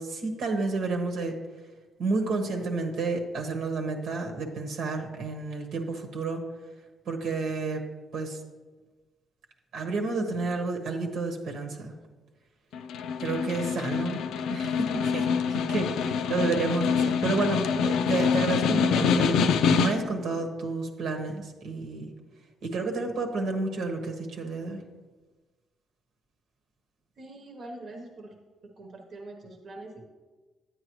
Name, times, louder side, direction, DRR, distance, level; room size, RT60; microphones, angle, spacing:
voice 1, 0.0-1.4 2.0-6.4 7.1-7.8 8.1-8.4 9.7-11.9 13.2-14.2 14.5-19.3 19.8-22.1 22.6-24.8, right 3 dB, 75° right, 3 dB, 1.3 m, -30 dB
Snare drum, 12.7-20.2, left 6 dB, 80° left, 0.4 m, -25 dB
voice 2, 27.2-28.3 28.8-30.0, right 2 dB, 55° right, 2 dB, 1.1 m, -43 dB
9.7 x 8.9 x 3.1 m, 1.3 s
cardioid pair, 90°, 0 cm